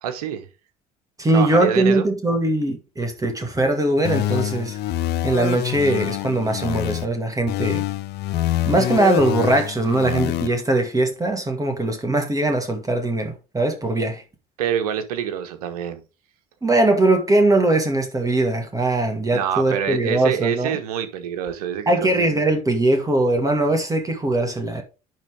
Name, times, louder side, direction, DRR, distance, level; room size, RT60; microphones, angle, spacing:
voice 1, 0.0-0.5 1.3-2.0 14.6-16.0 19.3-22.4, right 9 dB, 80° right, 1.3 m, -26 dB
voice 2, 1.2-4.8 5.2-7.8 8.7-14.2 16.6-20.8 21.9-24.8, right 2 dB, 20° right, 2.1 m, -21 dB
sound 1, 4.0-7.1 7.5-10.5, left 13 dB, 60° left, 0.9 m, -25 dB
10.5 x 3.9 x 5.0 m
hypercardioid pair, 60°, 19 cm